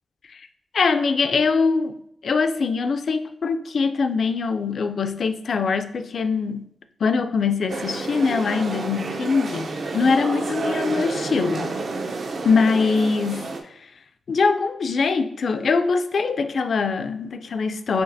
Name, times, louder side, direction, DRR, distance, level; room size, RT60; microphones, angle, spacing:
voice 1, 0.7-2.0 2.2-6.7 7.0-11.8 12.4-13.5 14.3-18.0, left 4 dB, 55° left, 0.3 m, -22 dB
sound 1, 7.7-13.6, right 3 dB, 55° right, 0.5 m, -30 dB
7.0 x 2.8 x 2.6 m
wide cardioid pair, 155°, 0 cm